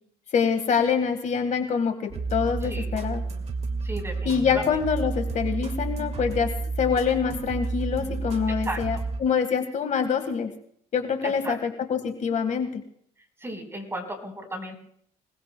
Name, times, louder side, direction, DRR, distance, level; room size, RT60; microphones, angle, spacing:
voice 1, 0.3-3.2 4.2-6.5 6.8-10.5 10.9-12.8, left 6 dB, 45° left, 7 dB, 1.6 m, -25 dB
sound 1, 2.1-9.2, right 3 dB, 40° right, 1.9 m, -31 dB
voice 2, 3.8-4.6 8.5-8.8 11.2-11.6 13.4-14.8, right 1 dB, 15° right, 4 dB, 4.3 m, -35 dB
26.0 x 19.5 x 2.2 m, 0.63 s
cardioid pair, 110°, 17 cm